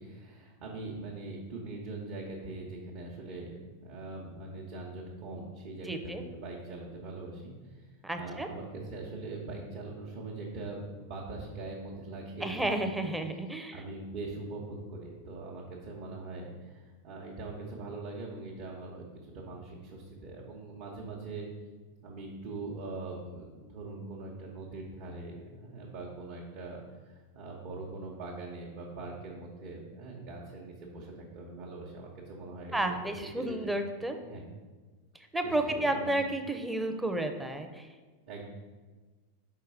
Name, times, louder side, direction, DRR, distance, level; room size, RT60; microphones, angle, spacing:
voice 1, 0.0-13.1 13.7-21.5 22.0-32.9 33.3-33.9 34.2-34.4 35.4-36.1 38.3-38.4, right 3 dB, 40° right, -4 dB, 1.1 m, -42 dB
voice 2, 5.8-6.2 8.0-8.5 12.4-13.8 32.7-34.2 35.1-37.9, right 1 dB, 5° right, 6 dB, 0.7 m, -32 dB
5.7 x 4.7 x 4.7 m, 1.4 s
figure-of-eight pair, 90°, 0 cm